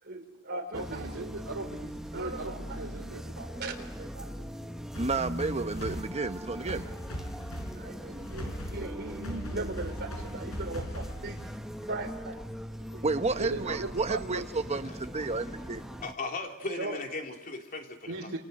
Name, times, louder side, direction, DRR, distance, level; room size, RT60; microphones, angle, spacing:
voice 1, 0.0-1.3 2.1-4.5 5.6-5.9 6.6-7.0 7.3-11.4 11.8-12.5 12.9-13.9 16.8-17.0, right 2 dB, 50° right, 4 dB, 4.2 m, -40 dB
sound 1, 0.7-16.1, equal, ahead, 1.0 m, -41 dB
voice 2, 0.7-3.2 13.4-14.4 18.1-18.4, right 2 dB, 80° right, -3 dB, 2.9 m, -38 dB
sound 2, 4.9-11.7, equal, 90° left, 5.6 m, -40 dB
voice 3, 5.0-6.8 13.0-15.8, right 3 dB, 30° right, 8 dB, 1.1 m, -31 dB
voice 4, 15.4-18.3, left 3 dB, 40° left, 2 dB, 3.3 m, -38 dB
28.5 x 26.5 x 6.7 m, 0.98 s
head